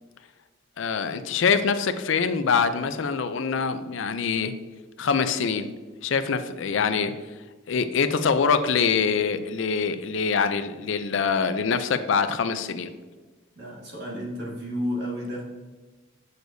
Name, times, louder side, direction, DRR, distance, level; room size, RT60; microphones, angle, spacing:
voice 1, 0.8-4.5 5.0-5.7 6.0-7.1 7.7-12.9, left 5 dB, 60° left, 10 dB, 0.4 m, -24 dB
voice 2, 13.5-15.4, equal, 50° right, -3 dB, 1.7 m, -31 dB
6.7 x 6.2 x 2.6 m, 1.3 s
head